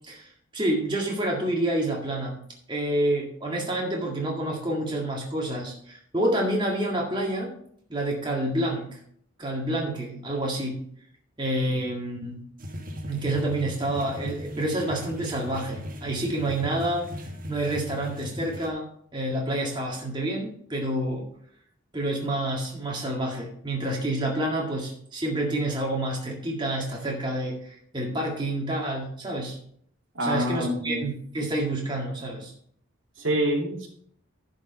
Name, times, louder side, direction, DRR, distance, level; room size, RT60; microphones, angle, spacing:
voice 1, 0.0-2.4 2.7-7.5 7.9-9.0 9.4-10.8 11.4-12.5 13.1-17.1 17.5-21.3 21.9-29.6 30.2-32.5, right 1 dB, 25° right, -2 dB, 1.9 m, -28 dB
sound 1, 12.6-18.7, equal, 45° right, 1.3 m, -38 dB
voice 2, 30.1-31.1 33.2-33.9, equal, 80° right, 0 dB, 2.5 m, -26 dB
11.0 x 5.2 x 5.3 m, 0.64 s
head